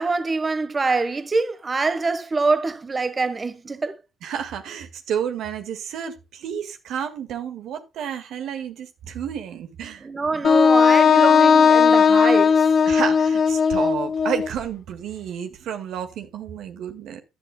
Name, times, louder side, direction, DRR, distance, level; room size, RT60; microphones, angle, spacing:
voice 1, 0.0-3.9 10.0-12.7, right 3 dB, 30° right, 1.3 m, -24 dB
voice 2, 4.2-10.1 12.9-17.2, right 8 dB, 65° right, 1.8 m, -31 dB
Wind instrument woodwind instrument, 10.4-14.5, left 6 dB, 55° left, 1.3 m, -16 dB
14.0 x 10.5 x 2.3 m
hypercardioid pair, 55°, 0 cm